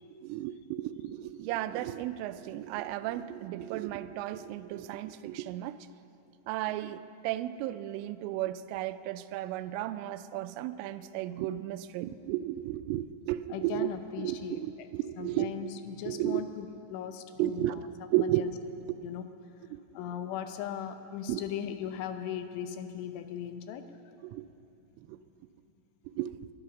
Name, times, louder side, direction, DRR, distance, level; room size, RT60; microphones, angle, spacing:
voice 1, 0.2-5.8 6.5-13.9 14.2-15.7 16.0-16.4 17.4-17.8 18.1-18.5 18.9-19.0 21.3-21.4 24.2-24.5 25.0-25.2 26.1-26.4, right 14 dB, 85° right, 13 dB, 3.1 m, -33 dB
voice 2, 13.5-14.9 15.2-17.8 18.2-18.5 19.0-19.3 19.9-23.8, left 9 dB, 80° left, 8 dB, 3.2 m, -38 dB
21.5 x 11.0 x 5.9 m, 2.6 s
omnidirectional pair, 5.6 m